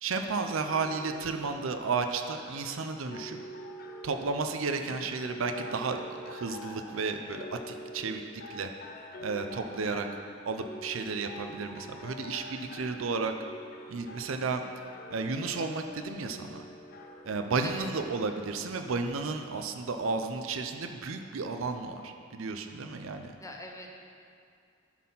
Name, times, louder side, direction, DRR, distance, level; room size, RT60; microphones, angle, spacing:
voice 1, 0.0-3.4 4.0-8.2 8.5-8.7 9.2-10.1 10.4-13.3 13.9-14.6 15.1-16.6 17.2-23.3, right 4 dB, 70° right, 6 dB, 0.5 m, -33 dB
sound 1, 0.6-17.6, equal, 50° left, 0.6 m, -46 dB
voice 2, 4.7-5.1 9.6-10.2 14.4-14.7 17.6-17.9 23.4-23.9, left 2 dB, 15° left, 1 dB, 0.7 m, -46 dB
11.5 x 4.2 x 5.5 m, 2.4 s
head